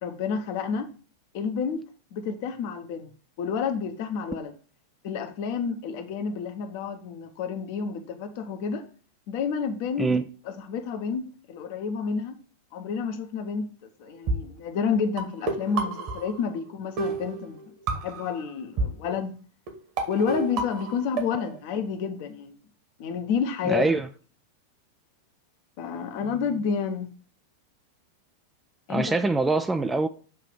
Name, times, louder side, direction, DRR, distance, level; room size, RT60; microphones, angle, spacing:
voice 1, 0.0-0.9 1.3-3.1 3.4-4.5 5.0-8.9 9.3-10.1 10.5-12.4 12.7-13.7 14.0-17.6 17.9-19.3 20.1-22.6 23.0-23.9 25.8-27.1 28.9-29.2, left 6 dB, 50° left, 0.9 m, -30 dB
sound 1, 14.3-14.4 15.2-16.7 17.0-18.3 18.8-18.9 19.7-19.8 20.0-21.6, right 3 dB, 45° right, 1.4 m, -30 dB
voice 2, 23.6-24.1 28.9-30.1, right 3 dB, 10° right, 0.4 m, -24 dB
6.9 x 2.8 x 5.0 m
figure-of-eight pair, 90°, 0 cm